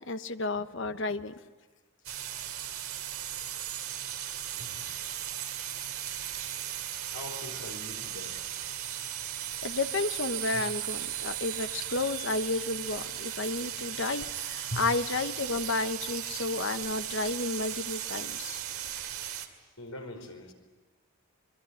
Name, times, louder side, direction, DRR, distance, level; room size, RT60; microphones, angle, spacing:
voice 1, 0.0-1.3 9.6-18.6, left 3 dB, 55° left, 10 dB, 1.0 m, -32 dB
sound 1, 2.0-19.5, right 11 dB, 80° right, 2.4 m, -37 dB
voice 2, 4.5-4.8 6.4-6.7 7.1-8.4 10.5-10.6 14.7-14.8 19.8-20.5, left 1 dB, 80° left, 4 dB, 4.9 m, -42 dB
25.5 x 22.5 x 10.0 m, 1.2 s
head